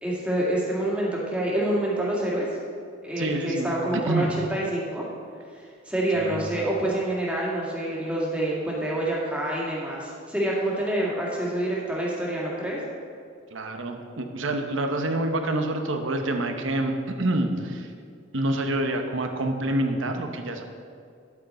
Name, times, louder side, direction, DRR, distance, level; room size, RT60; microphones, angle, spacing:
voice 1, 0.0-2.5 3.0-5.0 5.6-12.8, right 1 dB, 5° right, -5 dB, 2.0 m, -27 dB
voice 2, 3.2-3.7 4.0-4.3 6.1-6.5 13.5-17.9 18.3-20.6, right 1 dB, 75° right, 5 dB, 0.9 m, -27 dB
10.5 x 8.3 x 4.3 m, 2.3 s
head